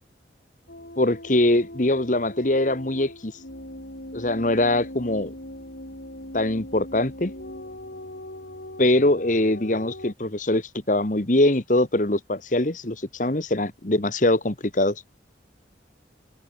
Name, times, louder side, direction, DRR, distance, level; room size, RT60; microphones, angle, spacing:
sound 1, 0.7-10.1, left 1 dB, 70° left, 7.4 m, -40 dB
voice 1, 1.0-3.3 4.1-5.3 6.3-7.3 8.8-15.0, left 1 dB, 45° left, 1.6 m, -22 dB
open air
head